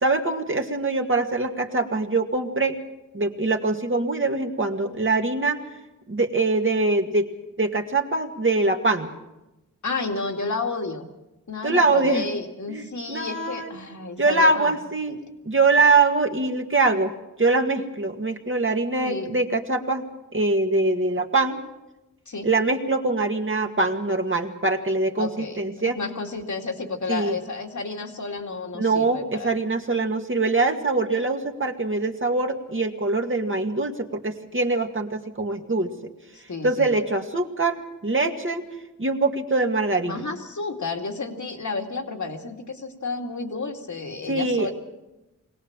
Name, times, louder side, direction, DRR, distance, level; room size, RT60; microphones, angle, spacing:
voice 1, 0.0-2.8 3.1-5.6 6.1-7.3 7.6-9.1 11.6-12.2 12.7-12.8 13.1-13.7 14.2-15.2 15.5-20.1 20.3-21.6 22.4-26.0 27.1-27.3 28.7-35.9 36.6-38.6 39.0-40.2 44.3-44.7, right 3 dB, 40° right, 3 dB, 2.0 m, -23 dB
voice 2, 9.8-11.1 11.5-14.7 15.1-15.2 19.0-19.4 22.3-22.5 25.2-25.7 25.9-29.5 36.3-36.9 40.1-44.7, left 3 dB, 60° left, 3 dB, 2.5 m, -31 dB
22.0 x 17.5 x 7.3 m, 0.97 s
cardioid pair, 60°, 33 cm